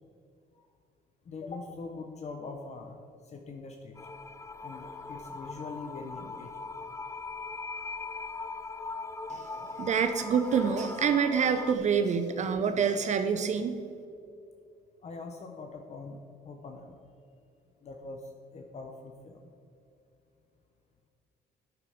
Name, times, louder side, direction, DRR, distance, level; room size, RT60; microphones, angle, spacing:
voice 1, 1.2-4.0 4.6-6.7 9.6-9.9 15.0-17.0 17.8-19.5, left 3 dB, 40° left, 4 dB, 1.0 m, -43 dB
sound 1, 4.0-11.7, left 3 dB, 15° left, 0.7 m, -40 dB
voice 2, 9.8-13.7, right 6 dB, 45° right, 8 dB, 0.7 m, -27 dB
11.0 x 8.9 x 5.1 m, 2.6 s
cardioid pair, 110°, 17 cm